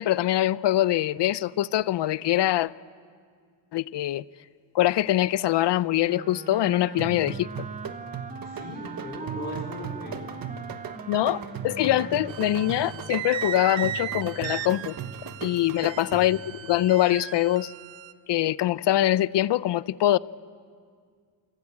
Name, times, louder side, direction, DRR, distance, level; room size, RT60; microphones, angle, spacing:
voice 1, 0.0-2.7 3.7-4.2 4.7-7.5 11.1-14.9 15.4-17.7 18.3-20.2, left 14 dB, 60° left, 0.6 m, -23 dB
Wind instrument woodwind instrument, 6.0-13.4, right 5 dB, 15° right, 0.8 m, -41 dB
sound 1, 7.0-16.5, right 7 dB, 45° right, 1.3 m, -38 dB
voice 2, 8.4-10.3 16.0-16.3, left 2 dB, 20° left, 4.4 m, -39 dB
sound 2, 12.3-18.1, right 11 dB, 75° right, 0.9 m, -36 dB
28.5 x 20.5 x 8.5 m
wide cardioid pair, 165°, 47 cm